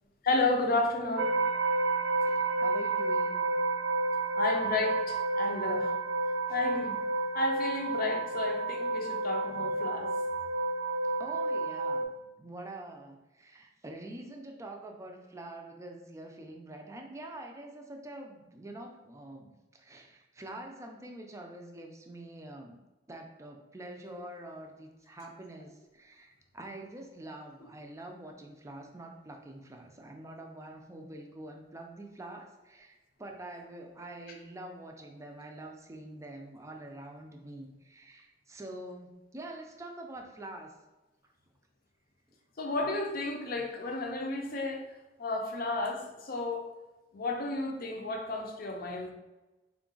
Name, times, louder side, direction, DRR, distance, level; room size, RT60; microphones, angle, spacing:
voice 1, 0.2-1.3 4.4-5.9 6.5-7.0 7.3-10.1 42.6-44.8 45.2-46.7 47.1-49.1, left 2 dB, 55° left, 2 dB, 0.6 m, -32 dB
sound 1, 1.2-12.0, right 2 dB, 75° right, 0.4 m, -30 dB
voice 2, 2.1-3.4 11.2-22.8 23.1-40.7 41.2-41.3, right 1 dB, 15° right, 3 dB, 0.4 m, -46 dB
3.7 x 2.3 x 3.8 m, 1.1 s
head